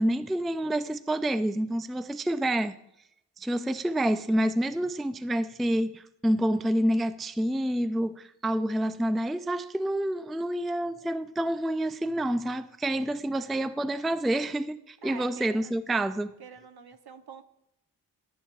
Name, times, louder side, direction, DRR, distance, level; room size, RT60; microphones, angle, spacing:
voice 1, 0.0-2.8 3.4-16.3, right 1 dB, ahead, 0.3 m, -28 dB
voice 2, 15.0-15.7 16.4-17.4, right 6 dB, 70° right, 0.9 m, -46 dB
17.5 x 7.0 x 2.4 m
cardioid pair, 45°, 40 cm